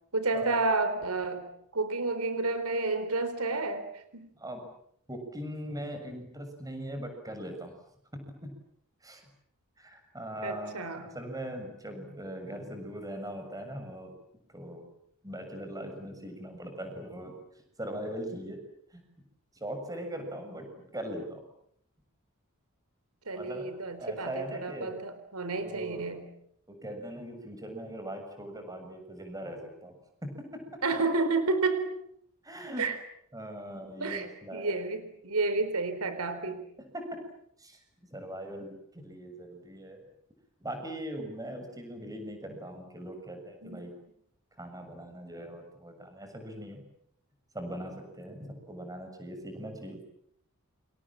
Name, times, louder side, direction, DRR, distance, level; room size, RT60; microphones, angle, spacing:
voice 1, 0.1-1.5 1.7-4.3 10.4-11.1 23.3-26.3 30.8-32.0 32.8-33.0 34.0-34.3 34.5-36.6 43.6-43.8, right 3 dB, 90° right, 11 dB, 3.9 m, -30 dB
voice 2, 4.4-4.7 5.1-7.7 8.4-8.5 9.0-9.3 9.8-14.1 14.5-14.9 15.2-17.4 17.8-18.6 18.9-19.0 19.5-21.4 23.4-23.7 24.0-24.9 25.6-26.1 26.7-30.0 30.2-31.0 32.4-32.9 33.3-34.8 36.9-37.2 37.6-37.8 38.1-40.0 40.6-44.0 44.6-46.8 47.5-50.0, right 1 dB, 15° right, 6 dB, 7.1 m, -40 dB
29.5 x 27.0 x 7.6 m, 0.71 s
head